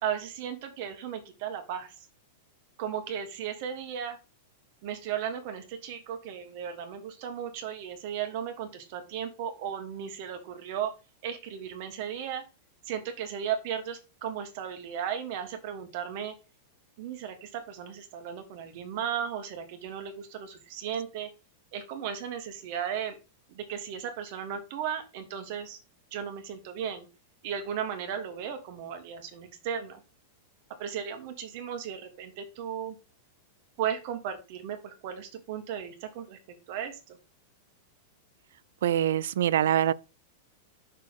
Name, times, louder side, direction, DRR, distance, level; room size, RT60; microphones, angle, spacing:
voice 1, 0.0-1.9 2.8-4.2 4.8-10.9 11.2-12.4 12.8-16.3 17.0-21.3 21.7-23.2 23.5-25.8 26.1-27.1 27.4-30.0 30.8-33.0 33.8-36.4 36.7-37.2, right 8 dB, 55° right, 1.4 m, -35 dB
voice 2, 38.8-39.9, right 11 dB, 80° right, 0.3 m, -24 dB
5.8 x 4.1 x 4.7 m
supercardioid pair, 145°, 0 cm